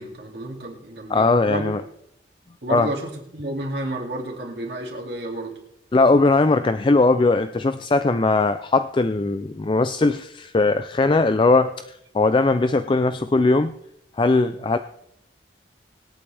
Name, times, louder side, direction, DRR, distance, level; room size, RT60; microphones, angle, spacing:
voice 1, 0.0-1.7 2.6-5.6, right 1 dB, 60° right, -2 dB, 2.6 m, -31 dB
voice 2, 1.1-1.8 2.7-2.9 5.9-13.7 14.2-14.8, left 3 dB, 25° left, 10 dB, 0.4 m, -19 dB
25.0 x 8.7 x 3.4 m, 0.77 s
head